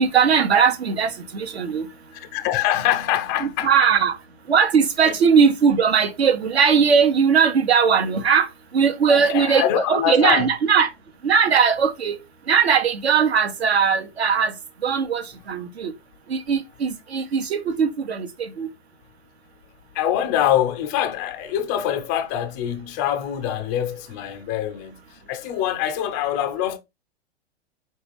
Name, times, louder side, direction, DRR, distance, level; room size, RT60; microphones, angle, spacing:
voice 1, 0.0-1.9 3.4-4.2 4.5-8.5 8.7-10.9 11.2-12.2 12.5-14.5 14.8-15.9 16.3-18.7, right 6 dB, 65° right, 1.0 m, -19 dB
voice 2, 2.1-3.7 5.1-5.2 9.1-10.5 19.9-25.0 25.3-26.8, left 11 dB, 15° left, 0.3 m, -24 dB
4.7 x 3.2 x 3.4 m
figure-of-eight pair, 110°, 34 cm